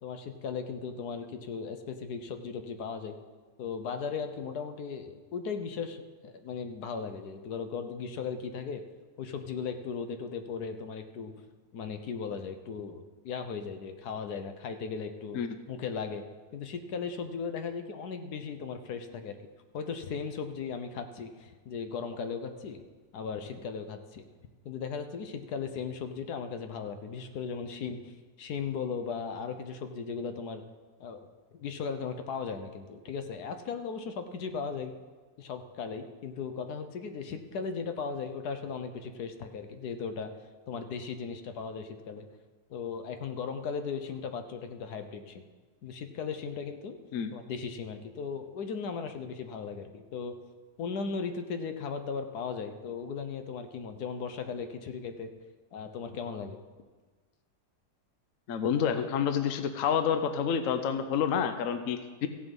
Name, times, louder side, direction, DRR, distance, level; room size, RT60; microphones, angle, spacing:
voice 1, 0.0-3.1 3.6-8.8 9.2-11.3 11.7-15.4 15.7-16.2 16.5-19.4 19.7-22.8 23.1-24.2 24.6-28.1 28.4-30.6 31.0-34.9 35.4-40.3 40.7-42.3 42.7-45.4 45.8-46.9 47.3-50.4 50.8-55.3 55.7-56.6, left 5 dB, 80° left, 7 dB, 1.4 m, -37 dB
voice 2, 58.5-62.3, left 7 dB, 65° left, 9 dB, 1.0 m, -28 dB
15.5 x 7.0 x 5.3 m, 1.4 s
omnidirectional pair, 1.7 m